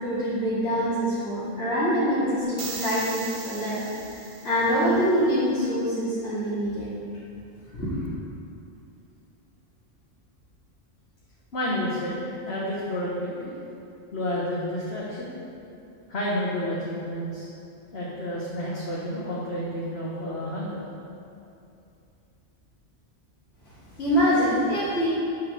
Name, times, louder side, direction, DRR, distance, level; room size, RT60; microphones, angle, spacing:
voice 1, 0.0-3.8 4.1-6.9 7.7-8.1 24.0-25.1, equal, 75° left, -13 dB, 2.6 m, -25 dB
sound 1, 2.6-4.9, right 4 dB, 35° right, 0.5 m, -38 dB
voice 2, 11.5-12.2 12.4-13.5 14.1-15.4 16.1-17.5 17.9-20.8, left 1 dB, 55° left, -7 dB, 1.6 m, -30 dB
11.0 x 4.3 x 6.8 m, 2.7 s
omnidirectional pair, 1.3 m